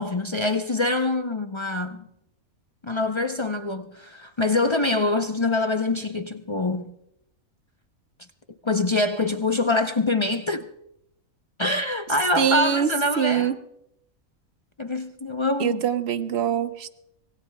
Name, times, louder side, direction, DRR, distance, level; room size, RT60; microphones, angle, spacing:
voice 1, 0.0-2.1 2.8-7.0 8.6-10.7 11.6-13.6 14.8-15.9, left 2 dB, 45° left, 0.3 m, -25 dB
voice 2, 12.4-12.9 13.2-13.6 15.6-16.9, right 8 dB, 55° right, 0.9 m, -23 dB
25.0 x 20.5 x 2.2 m
omnidirectional pair, 1.5 m